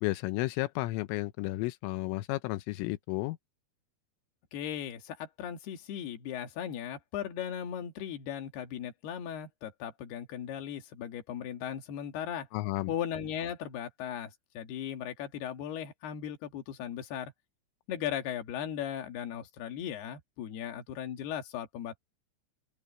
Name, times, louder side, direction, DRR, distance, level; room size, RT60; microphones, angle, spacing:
voice 1, 0.0-3.4 12.5-12.9, left 19 dB, 85° left, 3.3 m, -32 dB
voice 2, 4.5-12.5 12.9-17.3 17.9-22.0, left 9 dB, 60° left, 3.8 m, -37 dB
open air
omnidirectional pair, 5.7 m